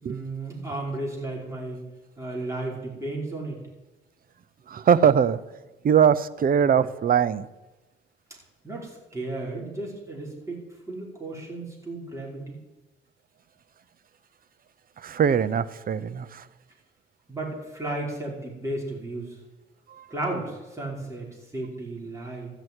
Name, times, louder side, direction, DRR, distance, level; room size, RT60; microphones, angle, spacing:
voice 1, 0.0-1.8 2.2-3.6 8.6-10.6 10.9-12.6 17.3-19.3 20.1-21.3 21.5-22.5, right 2 dB, 15° right, -3 dB, 5.1 m, -34 dB
voice 2, 4.7-5.4 5.8-7.5 15.0-16.3, right 8 dB, 45° right, 16 dB, 0.7 m, -21 dB
13.5 x 6.2 x 9.7 m, 1.1 s
cardioid pair, 90°, 20 cm